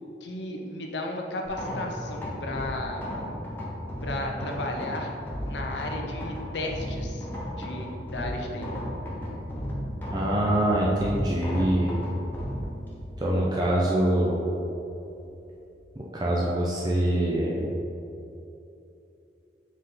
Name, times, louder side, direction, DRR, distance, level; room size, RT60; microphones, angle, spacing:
voice 1, 0.2-3.1 4.0-5.1 5.5-7.3 7.6-8.7, left 1 dB, 85° left, 1 dB, 0.8 m, -34 dB
sound 1, 1.4-15.7, equal, 10° left, 1.0 m, -35 dB
voice 2, 10.1-12.0 13.2-14.4 16.0-17.7, right 1 dB, 25° right, -4 dB, 0.6 m, -24 dB
7.3 x 4.1 x 3.9 m, 2.8 s
head